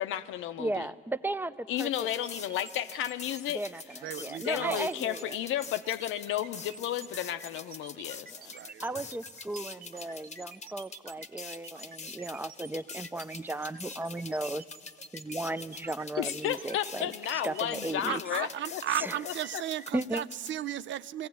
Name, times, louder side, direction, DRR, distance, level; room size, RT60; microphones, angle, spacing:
voice 1, 0.0-0.9 1.7-3.6 4.4-8.6 16.2-18.8 19.2-19.3, left 11 dB, 85° left, 0.7 m, -33 dB
voice 2, 0.6-2.1 3.5-5.3 8.3-8.5 8.8-14.6 15.1-18.2 18.9-19.2 19.9-20.2, right 2 dB, 10° right, 0.4 m, -36 dB
sound 1, 1.8-20.5, left 5 dB, 35° left, 0.8 m, -46 dB
sound 2, 2.0-18.3, right 5 dB, 50° right, 0.9 m, -49 dB
voice 3, 4.0-5.0 8.5-9.1 18.1-21.3, right 11 dB, 70° right, 0.5 m, -35 dB
20.0 x 15.5 x 9.3 m
cardioid pair, 90°, 20 cm